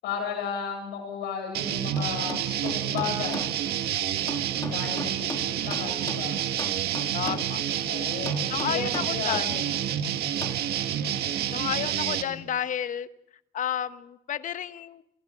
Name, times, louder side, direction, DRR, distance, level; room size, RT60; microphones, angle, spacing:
voice 1, 0.0-3.5 4.6-6.4 7.8-9.8 12.0-12.5, left 6 dB, 85° left, 3 dB, 7.6 m, -35 dB
sound 1, 1.5-12.2, right 10 dB, 70° right, 1.9 m, -28 dB
sound 2, 2.0-3.5 4.3-6.3 6.6-7.5 8.3-9.5 10.4-10.6, left 3 dB, 20° left, 2.0 m, -37 dB
voice 2, 7.1-7.6 8.5-9.5 11.5-13.1 13.5-15.0, left 9 dB, 50° left, 13 dB, 1.1 m, -31 dB
28.0 x 18.0 x 5.7 m, 0.79 s
cardioid pair, 110°, 17 cm